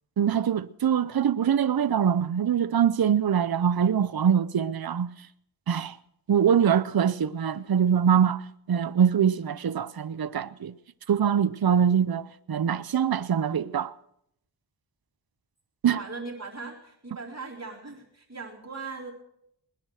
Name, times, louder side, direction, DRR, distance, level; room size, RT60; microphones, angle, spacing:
voice 1, 0.2-5.1 5.7-6.0 6.3-8.4 8.7-10.7 11.1-13.9 15.8-16.0, right 8 dB, 55° right, 0.7 m, -23 dB
voice 2, 15.9-19.1, right 4 dB, 35° right, 3.8 m, -39 dB
20.5 x 10.5 x 6.4 m
wide cardioid pair, 65°, 43 cm